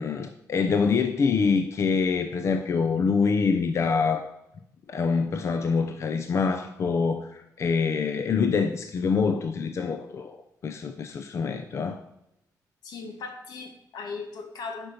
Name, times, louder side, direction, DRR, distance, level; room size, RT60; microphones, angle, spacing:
voice 1, 0.0-4.3 4.9-10.4 10.6-12.0, left 5 dB, 45° left, 7 dB, 0.6 m, -25 dB
voice 2, 12.8-14.9, left 4 dB, 85° left, 4 dB, 1.8 m, -38 dB
11.5 x 5.4 x 5.3 m, 0.82 s
wide cardioid pair, 155°, 7 cm